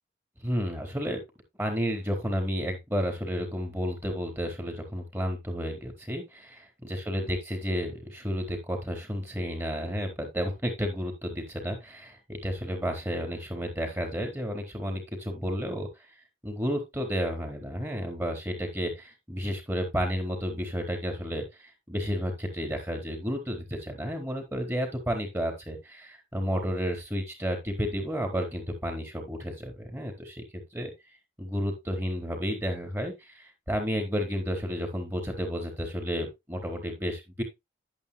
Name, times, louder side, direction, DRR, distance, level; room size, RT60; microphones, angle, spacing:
voice 1, 0.4-1.2 1.6-15.9 16.4-30.9 31.4-37.4, equal, 15° right, 4 dB, 4.2 m, -32 dB
11.5 x 11.0 x 2.2 m, 0.22 s
head